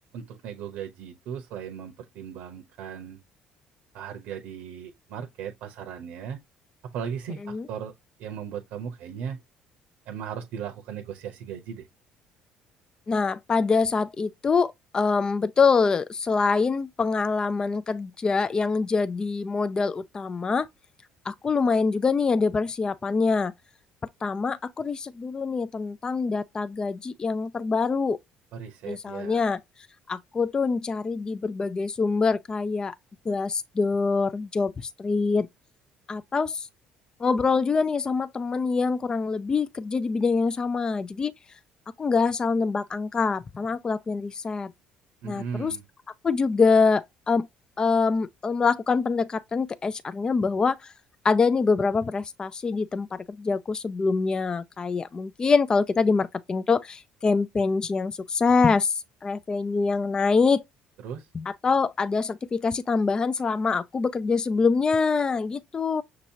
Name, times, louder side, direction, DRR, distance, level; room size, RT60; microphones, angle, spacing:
voice 1, 0.1-3.2 3.9-6.4 6.8-7.9 8.2-9.4 10.1-11.9 28.5-29.4 45.2-45.8 61.0-61.3, right 7 dB, 80° right, 0.8 m, -37 dB
voice 2, 13.1-20.7 21.3-23.5 24.2-28.2 28.8-29.6 30.1-32.9 33.3-35.5 36.1-36.7 37.2-41.3 42.0-44.7 45.2-45.8 46.2-47.5 47.8-50.9 51.2-60.6 61.3-66.0, left 4 dB, 30° left, 0.3 m, -25 dB
6.2 x 2.8 x 2.8 m
supercardioid pair, 85°, 3 cm